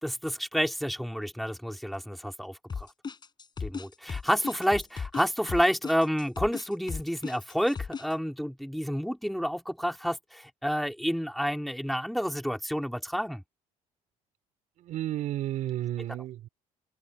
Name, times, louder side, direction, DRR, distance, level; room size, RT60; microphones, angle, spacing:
voice 1, 0.0-2.9 3.6-13.4, equal, ahead, 3.4 m, -29 dB
sound 1, 2.7-8.1, left 5 dB, 30° left, 7.7 m, -36 dB
voice 2, 14.8-16.5, right 13 dB, 65° right, 4.5 m, -32 dB
cardioid pair, 105°, 14 cm